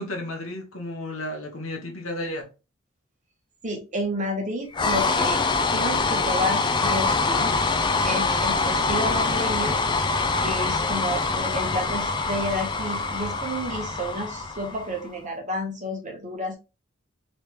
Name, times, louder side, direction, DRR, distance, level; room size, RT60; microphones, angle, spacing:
voice 1, 0.0-2.5, left 1 dB, 75° left, 1.1 m, -33 dB
voice 2, 3.6-5.4 5.7-7.5 8.0-16.6, equal, 35° right, 1.1 m, -31 dB
sound 1, 4.7-15.0, left 3 dB, 20° left, 0.4 m, -24 dB
3.3 x 3.2 x 3.0 m
head